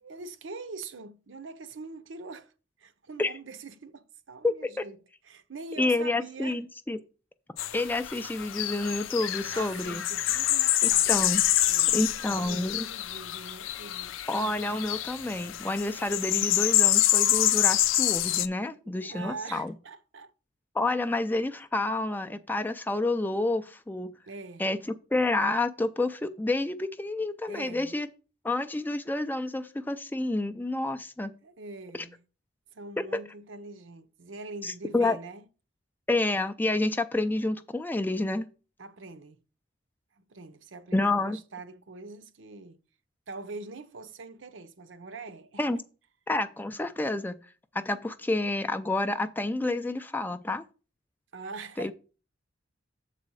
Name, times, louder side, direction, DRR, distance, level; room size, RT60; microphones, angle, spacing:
voice 1, 0.0-2.5 2.8-5.0 5.2-6.6 9.5-11.3 11.6-14.1 18.6-20.3 24.3-24.6 27.5-28.0 31.4-32.2 32.7-35.4 38.8-39.4 40.1-42.8 43.3-45.6 51.3-51.9, right 3 dB, 70° right, 0.7 m, -43 dB
voice 2, 4.4-4.8 5.8-7.0 7.7-10.0 10.8-11.4 11.9-12.9 14.3-19.7 20.7-24.1 24.6-24.8 25.1-28.1 28.4-31.3 33.0-33.2 34.6-35.2 36.1-38.5 40.9-41.4 45.6-45.8 46.3-47.4 47.7-50.6 51.8-51.9, left 2 dB, 10° left, 0.4 m, -29 dB
sound 1, 7.6-18.5, left 13 dB, 80° left, 0.4 m, -26 dB
7.3 x 4.2 x 6.2 m
head